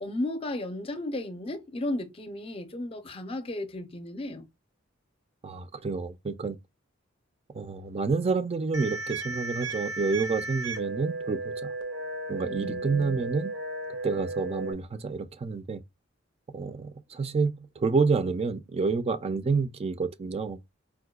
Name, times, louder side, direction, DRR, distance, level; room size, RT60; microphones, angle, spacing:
voice 1, 0.0-4.5 12.4-13.2, left 1 dB, 30° left, 0.5 m, -34 dB
voice 2, 5.4-6.6 7.5-11.7 12.3-13.6 14.0-15.8 16.5-20.6, right 4 dB, 30° right, 0.4 m, -29 dB
sound 1, 8.7-14.7, right 2 dB, 75° right, 0.7 m, -35 dB
4.6 x 2.2 x 2.3 m
head